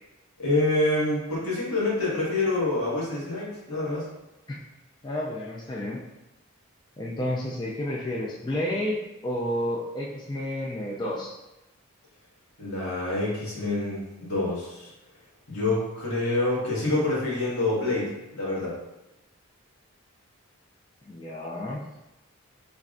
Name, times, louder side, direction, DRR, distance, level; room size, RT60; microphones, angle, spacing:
voice 1, 0.4-4.1 12.6-14.9 15.5-18.8, left 2 dB, 90° left, -7 dB, 1.5 m, -27 dB
voice 2, 5.0-6.0 7.0-11.3 21.1-21.8, left 1 dB, 20° left, -3 dB, 0.3 m, -31 dB
3.4 x 3.1 x 2.5 m, 0.98 s
head